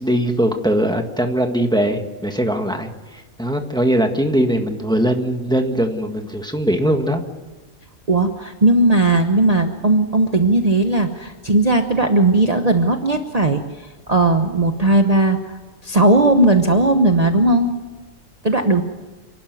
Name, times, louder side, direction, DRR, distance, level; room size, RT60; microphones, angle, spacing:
voice 1, 0.0-7.2, right 1 dB, 5° left, 5 dB, 1.6 m, -20 dB
voice 2, 8.1-13.6 14.1-17.7 18.4-18.8, right 2 dB, 30° right, 5 dB, 1.1 m, -17 dB
30.0 x 12.0 x 9.4 m, 1.2 s
omnidirectional pair, 1.3 m